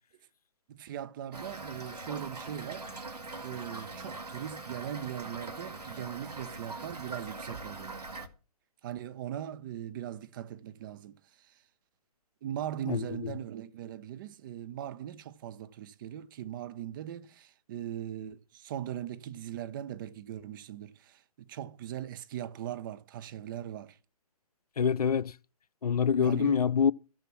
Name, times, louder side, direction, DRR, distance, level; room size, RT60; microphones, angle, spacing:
voice 1, 0.7-2.9 3.4-8.0 8.8-11.6 12.4-24.0 26.2-26.6, right 11 dB, 35° right, 0.8 m, -40 dB
Toilet flush / Fill (with liquid), 1.3-8.3, right 3 dB, 85° right, 2.2 m, -42 dB
voice 2, 12.9-13.3 24.8-25.3 25.8-26.9, left 7 dB, 75° left, 0.5 m, -26 dB
15.0 x 6.8 x 6.0 m
figure-of-eight pair, 140°, 20 cm